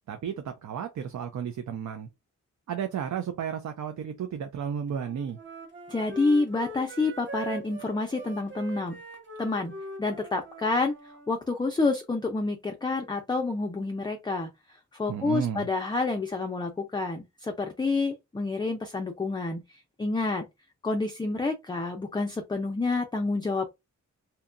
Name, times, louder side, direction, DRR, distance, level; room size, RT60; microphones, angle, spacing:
voice 1, 0.1-2.1 2.7-5.4 15.1-15.7, right 8 dB, 75° right, 0.5 m, -33 dB
Wind instrument woodwind instrument, 4.9-11.3, right 2 dB, 40° right, 0.9 m, -42 dB
voice 2, 5.9-9.0 9.4-14.5 14.9-20.5 20.8-23.7, left 3 dB, 15° left, 0.4 m, -28 dB
2.8 x 2.2 x 2.4 m
wide cardioid pair, 105°, 29 cm